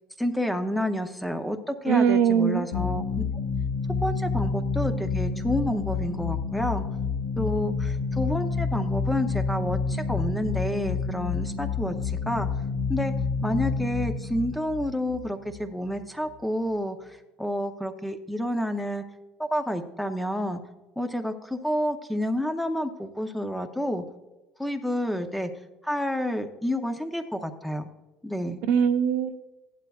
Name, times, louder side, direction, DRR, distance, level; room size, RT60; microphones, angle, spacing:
voice 1, 0.2-3.2 4.0-6.9 7.4-12.5 12.9-13.1 13.4-19.0 19.4-20.6 21.0-24.0 24.6-25.5 25.8-27.9 28.2-28.6, equal, ahead, 7 dB, 0.6 m, -29 dB
voice 2, 1.9-2.7 28.7-29.4, right 7 dB, 55° right, 8 dB, 0.8 m, -21 dB
sound 1, 2.7-16.0, left 4 dB, 80° left, 1.3 m, -29 dB
15.5 x 11.5 x 2.3 m, 1.1 s
cardioid pair, 175°, 2 cm